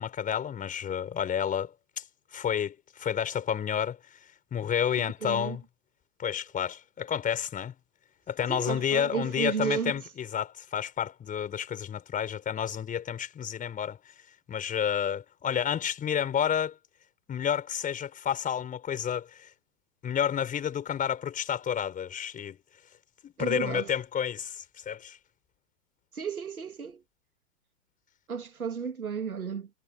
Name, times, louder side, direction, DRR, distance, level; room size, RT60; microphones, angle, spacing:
voice 1, 0.0-2.0 2.3-4.0 4.5-5.6 6.2-7.7 8.3-14.0 14.5-16.8 17.3-19.5 20.0-22.6 23.2-25.2, left 8 dB, 20° left, 5.2 m, -30 dB
voice 2, 5.0-5.6 8.5-9.9 23.4-23.9 26.1-27.0 28.3-29.7, right 6 dB, 85° right, 2.5 m, -33 dB
hypercardioid pair, 120°, 42 cm